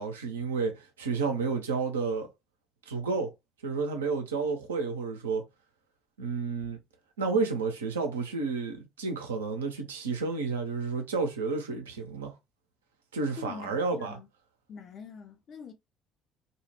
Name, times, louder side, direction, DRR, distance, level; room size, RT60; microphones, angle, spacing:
voice 1, 0.0-2.3 2.9-3.3 3.6-5.4 6.2-6.8 7.2-12.3 13.1-14.1, right 4 dB, 75° right, 0.5 m, -31 dB
voice 2, 13.3-14.3 14.7-15.7, left 6 dB, 45° left, 0.6 m, -44 dB
2.2 x 2.0 x 3.0 m
figure-of-eight pair, 55°, 0 cm